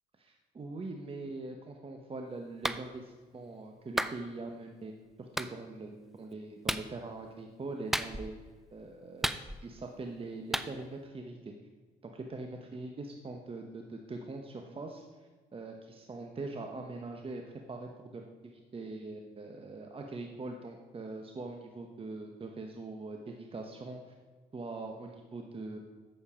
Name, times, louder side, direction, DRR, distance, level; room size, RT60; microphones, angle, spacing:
voice 1, 0.3-4.9 5.2-8.3 8.7-11.5 12.0-17.4 17.7-24.1 24.5-25.8, right 3 dB, 30° right, 3 dB, 1.0 m, -42 dB
Clapping, 2.6-2.8 4.0-4.2 5.4-5.5 6.7-6.9 7.9-8.4 9.2-9.8 10.5-10.7, equal, ahead, 0.5 m, -32 dB
8.4 x 6.9 x 5.0 m, 1.4 s
hypercardioid pair, 60°, 19 cm